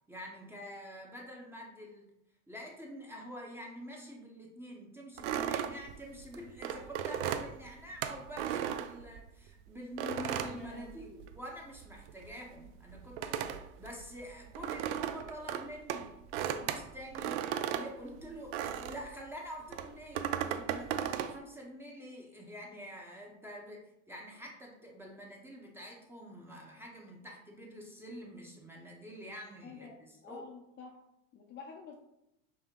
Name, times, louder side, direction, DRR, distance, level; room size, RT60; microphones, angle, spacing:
voice 1, 0.1-2.1 2.5-13.4 13.7-16.2 16.6-17.4 17.7-30.5, equal, 5° right, -2 dB, 0.7 m, -47 dB
sound 1, 5.2-9.5 10.0-11.5 11.7-19.1 19.7-21.4, right 9 dB, 65° right, 0.5 m, -36 dB
voice 2, 10.4-11.2 29.6-29.9 30.2-31.0 31.3-32.0, left 5 dB, 30° left, -1 dB, 0.6 m, -49 dB
5.4 x 2.2 x 3.6 m, 0.84 s
hypercardioid pair, 110°, 38 cm